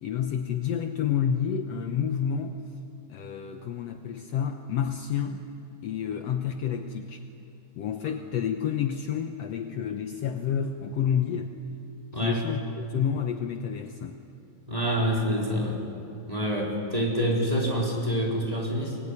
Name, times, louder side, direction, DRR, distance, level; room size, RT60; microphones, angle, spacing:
voice 1, 0.0-2.6 3.1-5.4 5.8-7.2 7.8-11.5 12.1-14.2, left 8 dB, 80° left, 6 dB, 1.4 m, -29 dB
voice 2, 14.7-15.8 16.3-19.0, equal, 10° right, -2 dB, 4.0 m, -27 dB
24.5 x 22.0 x 9.9 m, 2.7 s
omnidirectional pair, 4.2 m